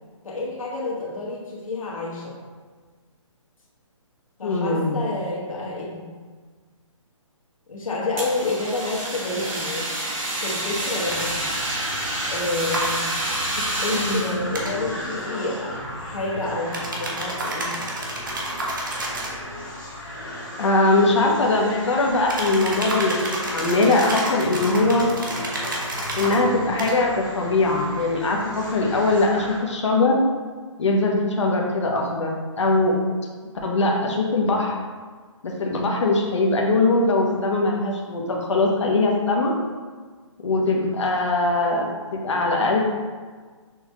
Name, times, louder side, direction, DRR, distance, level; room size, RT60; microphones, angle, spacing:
voice 1, 0.2-2.3 4.4-6.1 7.7-9.9 10.4-11.4 12.3-13.3 13.8-17.8, left 2 dB, 90° left, -5 dB, 1.5 m, -29 dB
voice 2, 4.4-5.0 13.6-13.7 13.9-14.3 20.6-23.2 23.5-25.1 26.1-30.2 30.8-32.3 32.6-32.9 33.6-34.7 35.4-39.5 40.4-42.8, left 2 dB, 60° left, -1 dB, 0.8 m, -21 dB
Fire, 8.1-14.4, right 1 dB, 80° right, 1.5 m, -28 dB
sound 1, 11.0-29.7, left 1 dB, 35° left, 1.0 m, -35 dB
sound 2, 11.1-11.3 12.7-12.9 14.5-14.7 16.7-19.4 22.3-26.4 26.8-27.0, right 1 dB, 40° right, 0.7 m, -30 dB
6.2 x 2.3 x 2.9 m, 1.5 s
hypercardioid pair, 175°, 17 cm